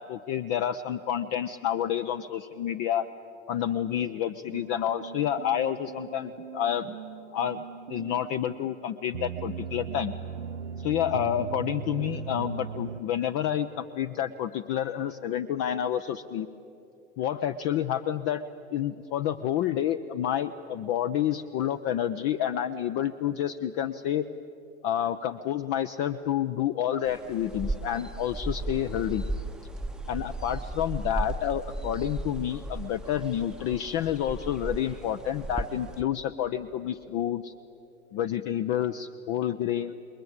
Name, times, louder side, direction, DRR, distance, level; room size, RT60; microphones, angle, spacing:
voice 1, 0.0-3.1 3.5-6.9 7.3-7.6 7.9-10.1 10.8-16.5 17.2-18.4 18.7-24.3 24.8-29.2 30.1-37.5 38.1-39.9, left 10 dB, 50° left, 9 dB, 0.8 m, -29 dB
sound 1, 4.5-13.0, right 8 dB, 80° right, 0.7 m, -39 dB
sound 2, 27.1-36.0, right 2 dB, ahead, 0.8 m, -36 dB
28.5 x 22.0 x 8.1 m, 3.0 s
figure-of-eight pair, 80°, 36 cm